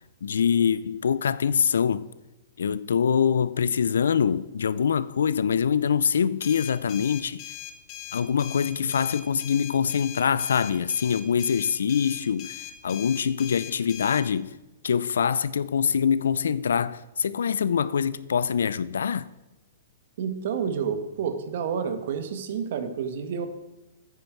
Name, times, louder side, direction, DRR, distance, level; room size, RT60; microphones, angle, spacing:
voice 1, 0.2-2.1 2.6-7.4 8.1-12.6 12.8-14.5 14.8-19.3, left 7 dB, 85° left, 0.5 m, -24 dB
sound 1, 6.4-14.2, left 10 dB, 40° left, 1.2 m, -40 dB
voice 2, 20.2-23.5, right 7 dB, 60° right, 1.4 m, -29 dB
9.3 x 9.1 x 4.6 m
hypercardioid pair, 135°, 0 cm